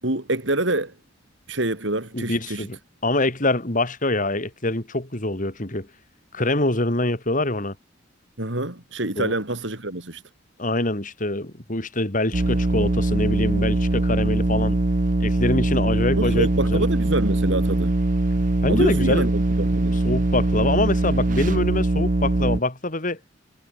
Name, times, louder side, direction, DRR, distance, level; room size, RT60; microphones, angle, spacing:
voice 1, 0.0-0.9 1.5-2.7 8.4-10.2 16.2-17.9 18.7-20.0, right 1 dB, 70° right, 5.0 m, -26 dB
voice 2, 2.1-5.9 6.3-7.8 9.2-9.3 10.6-14.8 15.2-16.9 18.6-19.3 20.0-23.2, left 2 dB, 45° left, 3.8 m, -25 dB
sound 1, 12.3-22.6, right 2 dB, 45° right, 0.7 m, -22 dB
head